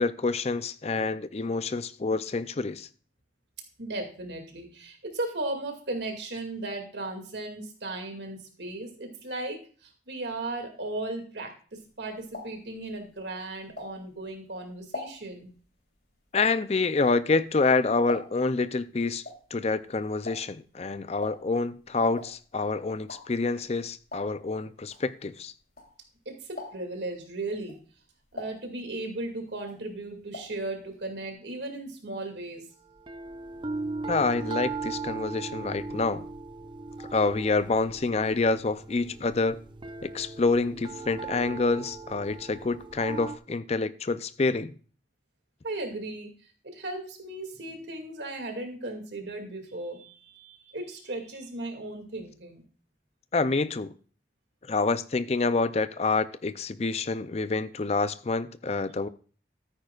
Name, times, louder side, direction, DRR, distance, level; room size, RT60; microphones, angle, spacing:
voice 1, 0.0-2.9 16.3-19.2 19.5-25.5 34.1-36.2 37.1-39.6 40.0-44.7 53.3-53.9 54.7-59.1, left 3 dB, 35° left, 0.5 m, -27 dB
voice 2, 3.8-15.5 26.3-27.8 28.3-32.6 45.6-46.3 46.6-52.6, right 2 dB, 70° right, 2.4 m, -36 dB
sound 1, 11.8-14.3 14.7-18.6 18.9-26.2 26.5-27.1 27.5-29.3 29.6-30.6 30.9-31.0 31.3-31.4, left 2 dB, 55° left, 3.3 m, -43 dB
sound 2, 33.0-43.4, right 4 dB, 25° right, 0.5 m, -38 dB
13.5 x 9.6 x 2.4 m
head